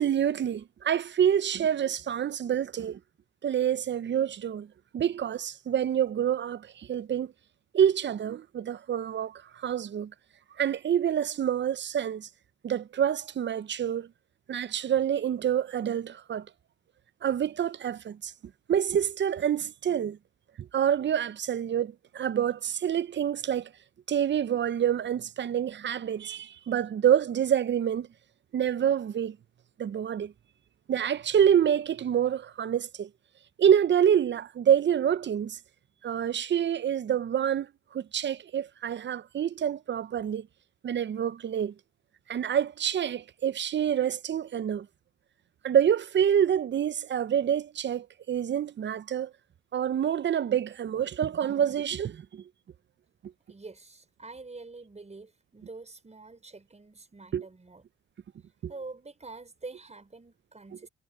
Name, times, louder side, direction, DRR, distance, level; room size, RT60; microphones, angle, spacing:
voice 1, 0.0-3.0 3.4-4.7 4.9-7.3 7.7-10.1 10.6-12.3 12.6-14.1 14.5-16.5 17.2-18.3 18.7-20.2 20.6-23.7 24.1-28.1 28.5-29.4 29.8-30.3 30.9-33.1 33.6-35.6 36.0-37.7 37.9-40.5 40.8-41.7 42.3-44.9 45.6-49.3 49.7-52.4 57.3-57.4 58.6-58.7, right 9 dB, 40° right, 0.6 m, -27 dB
voice 2, 53.5-57.8 58.7-60.9, right 3 dB, 20° right, 5.5 m, -46 dB
cardioid pair, 90°, 30 cm